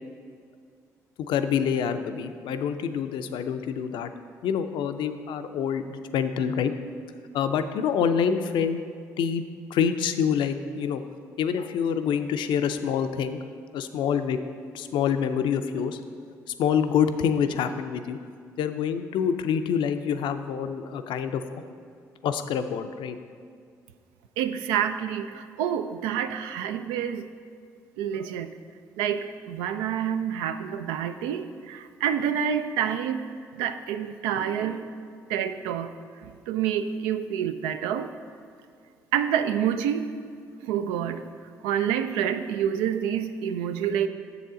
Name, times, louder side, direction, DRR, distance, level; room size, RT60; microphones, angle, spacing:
voice 1, 1.2-4.1 4.4-6.7 7.3-8.8 9.2-9.4 9.7-11.0 11.4-13.4 13.7-14.4 14.7-16.0 16.6-18.2 18.6-21.4 22.2-23.2, left 7 dB, 65° left, 9 dB, 0.4 m, -26 dB
voice 2, 24.4-27.3 28.0-28.5 29.0-33.3 33.5-34.9 35.3-35.9 36.2-38.1 39.1-40.1 40.6-41.2 41.6-44.1, right 9 dB, 75° right, 10 dB, 0.4 m, -28 dB
7.2 x 7.0 x 3.7 m, 2.2 s
hypercardioid pair, 50°, 9 cm